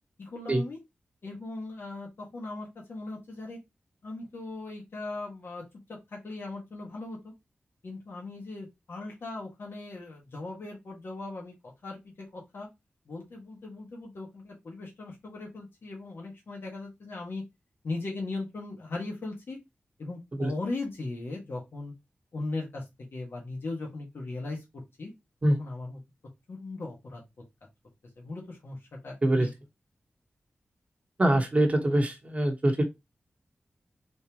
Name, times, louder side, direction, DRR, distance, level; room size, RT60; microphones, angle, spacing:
voice 1, 0.2-0.8 1.2-3.6 4.0-5.6 5.9-7.3 7.8-11.5 11.8-12.7 13.1-17.4 17.8-19.6 20.0-21.9 22.3-22.8 23.1-25.1 25.6-26.0 26.5-27.2 28.2-29.5, left 2 dB, 70° left, 1.6 m, -38 dB
voice 2, 31.2-32.8, right 1 dB, 35° right, 1.0 m, -24 dB
4.2 x 3.6 x 2.9 m
wide cardioid pair, 85°, 4 cm